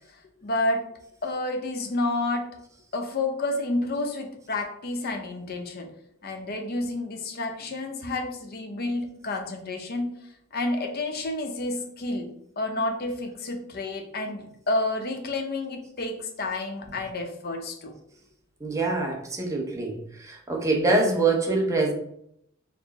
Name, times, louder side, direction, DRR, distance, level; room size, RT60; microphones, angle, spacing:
voice 1, 0.4-0.9 1.2-2.5 2.9-5.9 6.2-10.2 10.5-17.9, left 2 dB, 50° left, 3 dB, 0.6 m, -30 dB
voice 2, 18.6-21.9, right 3 dB, 15° right, 1 dB, 0.7 m, -25 dB
4.4 x 2.0 x 4.0 m, 0.72 s
head